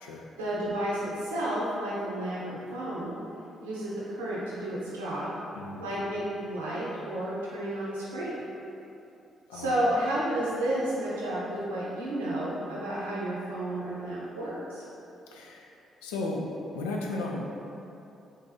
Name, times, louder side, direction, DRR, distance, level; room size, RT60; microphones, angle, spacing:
voice 1, 0.4-3.2 3.6-5.3 5.8-8.4 9.5-14.8, right 1 dB, 85° right, -8 dB, 0.6 m, -31 dB
voice 2, 5.5-5.9 9.5-9.8 15.3-15.7 16.0-16.5 16.7-17.4, left 2 dB, 80° left, -1 dB, 0.4 m, -35 dB
3.6 x 2.6 x 3.5 m, 2.8 s
hypercardioid pair, 40°, 0 cm